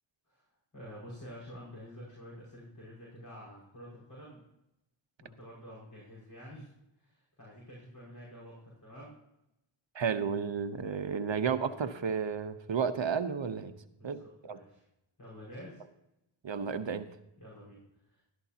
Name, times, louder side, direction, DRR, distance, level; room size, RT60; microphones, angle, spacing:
voice 1, 0.7-4.4 5.2-6.7 7.0-9.1 13.9-14.8 15.2-15.8 17.4-18.2, equal, 40° left, -6 dB, 5.6 m, -49 dB
voice 2, 9.9-13.7 14.0-14.6 16.4-17.1, right 6 dB, 65° right, 9 dB, 1.0 m, -32 dB
15.5 x 13.0 x 2.9 m, 0.87 s
wide cardioid pair, 60°, 49 cm